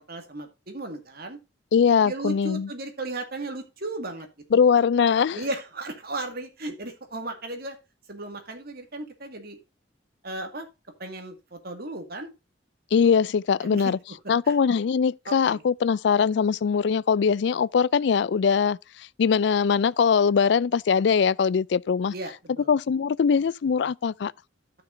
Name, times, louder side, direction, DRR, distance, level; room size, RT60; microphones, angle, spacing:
voice 1, 0.0-1.4 2.0-4.3 4.5-4.6 5.3-7.8 8.1-9.6 10.2-10.7 11.0-12.3 13.6-13.9 14.2-14.6 15.3-15.6 22.1-22.7, right 2 dB, 55° right, 2.1 m, -35 dB
voice 2, 1.7-2.7 4.5-5.4 12.9-14.0 14.3-18.8 19.2-22.1 22.7-24.3, left 6 dB, 65° left, 0.4 m, -21 dB
15.0 x 6.0 x 2.7 m
head